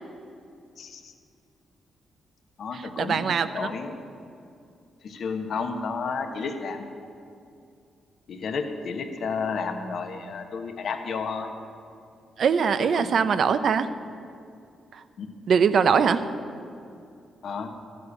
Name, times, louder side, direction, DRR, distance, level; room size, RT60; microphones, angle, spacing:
voice 1, 0.8-1.1 2.6-4.0 5.0-6.9 8.3-11.5 12.8-13.3 15.2-15.3 17.4-17.7, left 5 dB, 70° left, 6 dB, 1.2 m, -32 dB
voice 2, 2.7-3.7 12.4-13.9 14.9-15.0 15.5-16.2, right 6 dB, 65° right, 12 dB, 0.6 m, -22 dB
13.0 x 7.5 x 8.3 m, 2.5 s
supercardioid pair, 60°, 0 cm